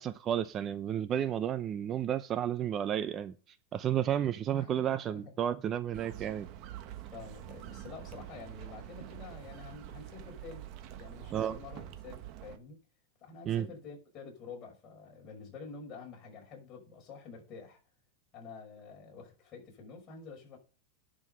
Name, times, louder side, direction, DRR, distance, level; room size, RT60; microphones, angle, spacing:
voice 1, 0.0-3.3 3.7-6.5 11.3-11.6 13.5-13.7, right 10 dB, 30° right, 0.6 m, -32 dB
voice 2, 4.5-5.3 6.9-10.7 11.0-12.8 13.2-17.8 18.3-20.6, left 4 dB, 30° left, 5.7 m, -48 dB
sound 1, 5.9-12.6, right 12 dB, 45° right, 1.3 m, -46 dB
11.0 x 6.3 x 6.5 m
supercardioid pair, 140°, 0 cm